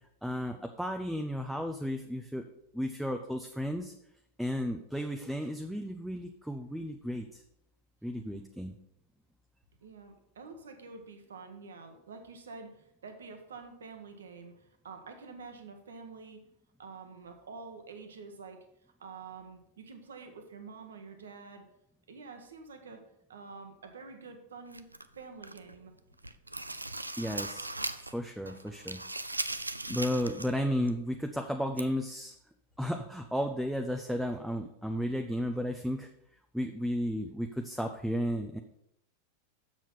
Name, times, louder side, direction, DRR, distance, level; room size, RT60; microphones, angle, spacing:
voice 1, 0.2-2.4 2.7-3.9 4.4-7.4 8.0-8.8 27.2-27.7 28.0-29.0 29.9-32.3 32.8-36.1 36.5-38.6, equal, ahead, 4 dB, 0.6 m, -33 dB
voice 2, 8.2-8.5 9.8-16.4 16.8-18.6 19.0-21.6 22.1-23.0 23.3-25.9 38.4-38.5, right 4 dB, 65° right, 6 dB, 1.2 m, -48 dB
sound 1, 24.7-25.7 26.1-28.2 28.5-30.6 30.9-31.0 31.8-31.9, right 2 dB, 85° right, 0.4 m, -38 dB
7.3 x 6.3 x 5.5 m, 0.77 s
figure-of-eight pair, 90°, 0 cm